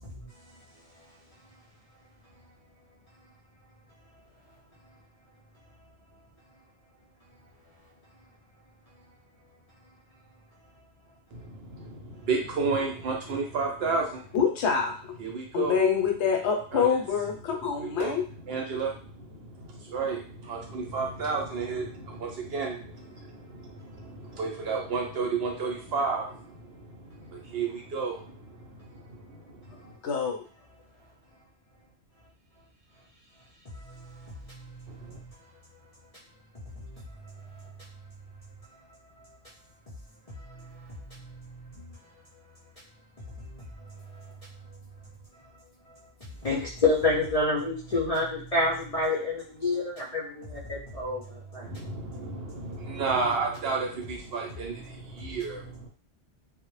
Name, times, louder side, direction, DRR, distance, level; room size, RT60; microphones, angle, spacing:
voice 1, 11.3-14.4 15.2-15.8 16.7-17.0 17.8-30.0 34.9-35.2 51.6-55.9, right 4 dB, 65° right, 1 dB, 0.8 m, -32 dB
voice 2, 14.3-15.1 15.5-18.2 30.0-30.4, left 6 dB, 75° left, 2 dB, 0.8 m, -26 dB
voice 3, 46.4-51.2 51.5-51.7, left 2 dB, 45° left, -6 dB, 0.5 m, -27 dB
2.0 x 2.0 x 3.0 m, 0.42 s
omnidirectional pair, 1.2 m